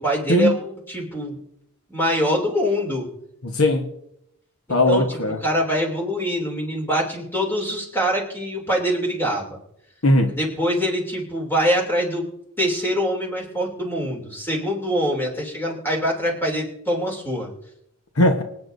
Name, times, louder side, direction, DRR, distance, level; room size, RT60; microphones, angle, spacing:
voice 1, 0.0-1.3 1.9-3.1 4.7-5.0 5.4-9.6 10.4-12.3 12.6-17.5, equal, 10° left, -1 dB, 2.8 m, -24 dB
voice 2, 3.4-3.8 4.7-5.4 10.0-10.3 18.2-18.4, left 1 dB, 70° left, 4 dB, 1.2 m, -18 dB
26.0 x 9.1 x 2.7 m, 0.77 s
head